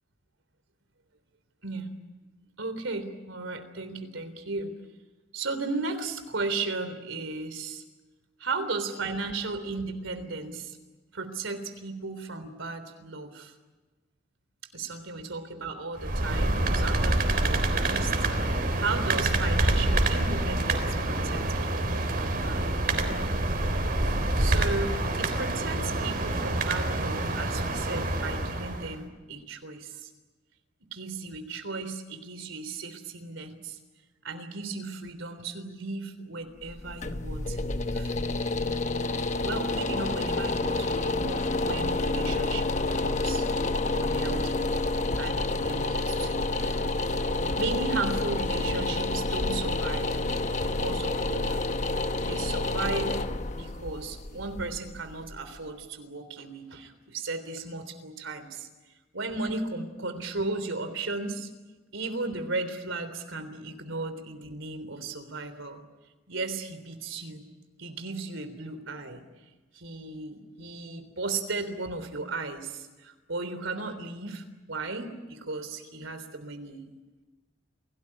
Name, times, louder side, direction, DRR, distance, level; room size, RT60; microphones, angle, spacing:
voice 1, 2.6-4.7 5.3-7.8 8.4-10.8 11.1-13.5 14.7-23.3 24.4-30.1 30.9-33.8 34.2-38.2 39.4-43.5 43.9-44.6 45.2-46.8 47.1-50.2 50.6-51.7 52.2-53.2 53.5-58.7 59.1-61.5 61.9-65.8 66.3-67.4 67.8-69.2 69.7-76.8, right 3 dB, 90° right, 9 dB, 3.5 m, -35 dB
sound 1, 16.0-29.0, right 2 dB, 50° right, 3.7 m, -27 dB
sound 2, 36.6-55.6, left 2 dB, 40° left, 1.0 m, -29 dB
28.0 x 18.0 x 10.0 m, 1.2 s
head